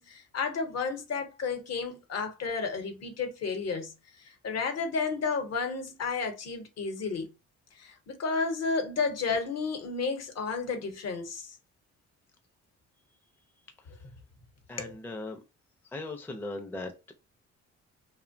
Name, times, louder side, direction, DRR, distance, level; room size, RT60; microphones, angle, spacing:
voice 1, 0.0-3.9 4.2-7.3 7.8-11.6 14.8-14.9, left 4 dB, 55° left, 0.8 m, -32 dB
voice 2, 14.7-15.4 15.9-17.1, left 2 dB, 5° left, 0.4 m, -38 dB
2.5 x 2.1 x 2.5 m
cardioid pair, 90°, 30 cm